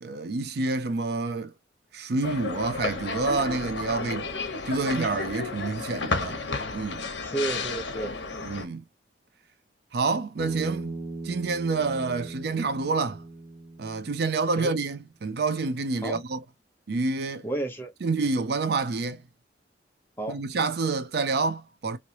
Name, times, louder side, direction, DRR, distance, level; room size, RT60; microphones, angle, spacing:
voice 1, 0.0-1.5 1.9-4.3 4.7-6.4 6.7-7.1 8.4-8.8 9.9-11.0 11.2-13.2 13.8-16.4 16.9-17.4 18.0-19.2 20.3-22.0, right 3 dB, 60° right, 0.5 m, -28 dB
sound 1, 2.2-8.6, left 3 dB, 70° left, 1.0 m, -32 dB
voice 2, 7.2-8.1 14.6-14.7 16.0-16.2 17.4-17.9 20.2-20.4, right 2 dB, 10° left, 0.9 m, -31 dB
Bass guitar, 10.4-14.7, right 2 dB, 15° right, 0.8 m, -39 dB
3.1 x 2.7 x 2.9 m
head